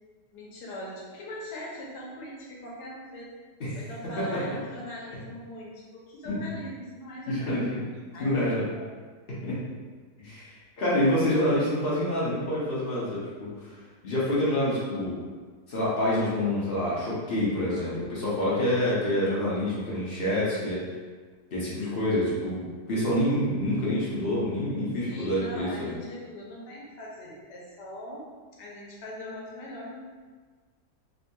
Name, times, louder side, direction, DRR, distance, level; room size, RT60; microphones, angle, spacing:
voice 1, 0.3-3.3 3.7-7.9 8.1-8.9 25.0-28.3 28.6-30.0, equal, 75° left, -4 dB, 1.3 m, -41 dB
voice 2, 3.6-4.6 6.2-6.4 7.3-7.8 8.2-8.7 9.4-9.6 10.2-13.8 14.0-15.2 15.7-20.8 21.5-25.9, left 1 dB, 55° left, -8 dB, 0.6 m, -27 dB
3.6 x 2.6 x 2.2 m, 1.5 s
omnidirectional pair, 1.8 m